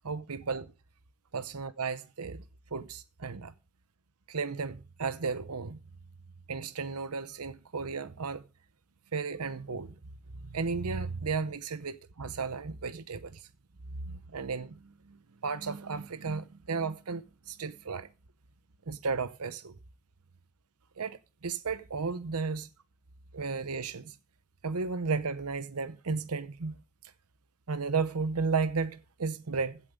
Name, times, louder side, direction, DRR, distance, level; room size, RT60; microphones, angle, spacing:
voice 1, 0.0-0.7 1.3-2.4 2.7-3.5 4.3-5.8 6.5-8.4 9.1-9.9 10.4-13.5 14.1-14.8 15.4-18.1 18.9-19.7 21.0-22.7 23.3-24.1 24.6-26.8 27.7-29.8, right 4 dB, 85° right, 0.9 m, -34 dB
16.0 x 7.6 x 5.2 m
head